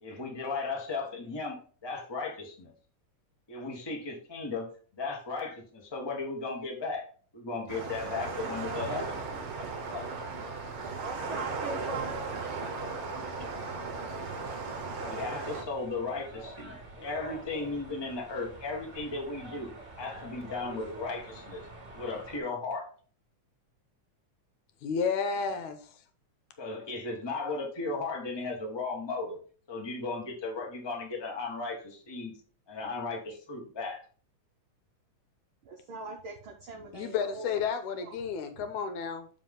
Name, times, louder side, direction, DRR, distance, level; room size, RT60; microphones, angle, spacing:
voice 1, 0.0-1.6 1.8-2.7 3.5-7.0 7.3-9.2 9.5-10.0 15.0-19.7 20.0-21.7 21.9-22.9 26.6-29.4 29.7-32.3 32.7-34.0, left 3 dB, 25° left, 0.5 m, -36 dB
sound 1, 7.7-15.6, right 4 dB, 60° right, 1.5 m, -36 dB
sound 2, 8.0-22.4, right 2 dB, 20° right, 1.6 m, -48 dB
voice 2, 8.6-9.6 10.8-12.6 35.6-37.6 38.0-38.2 38.5-38.7, right 4 dB, 85° right, 1.1 m, -42 dB
voice 3, 24.8-25.9 36.9-39.3, left 6 dB, 75° left, 2.2 m, -31 dB
7.2 x 4.9 x 3.8 m
omnidirectional pair, 3.6 m